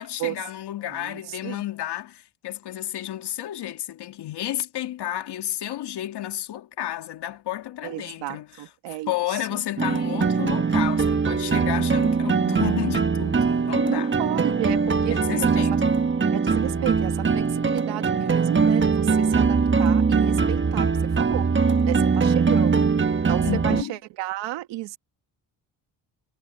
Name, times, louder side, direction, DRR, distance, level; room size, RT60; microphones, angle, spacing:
voice 1, 0.0-8.5 8.9-14.2 15.1-16.0 23.4-23.9, left 13 dB, 70° left, 2.7 m, -31 dB
voice 2, 0.8-1.6 7.8-9.6 13.9-15.6 16.3-21.5 21.9-22.9 23.3-25.0, right 16 dB, 85° right, 2.0 m, -33 dB
sound 1, 9.8-23.8, right 5 dB, 25° right, 1.6 m, -21 dB
supercardioid pair, 75°, 42 cm